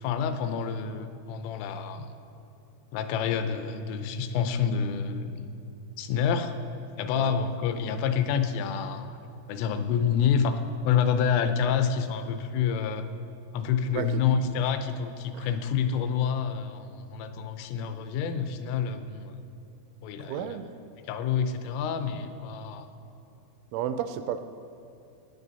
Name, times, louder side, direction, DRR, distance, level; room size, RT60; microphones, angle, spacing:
voice 1, 0.0-2.1 2.9-5.5 6.0-6.6 7.0-9.2 9.5-13.1 13.5-19.4 20.0-20.6 21.1-22.9, left 7 dB, 85° left, 9 dB, 3.3 m, -28 dB
voice 2, 13.9-14.2 15.3-15.5 20.2-20.7 23.7-24.4, right 9 dB, 85° right, 10 dB, 2.9 m, -32 dB
17.5 x 10.0 x 4.1 m, 2.8 s
omnidirectional pair, 5.7 m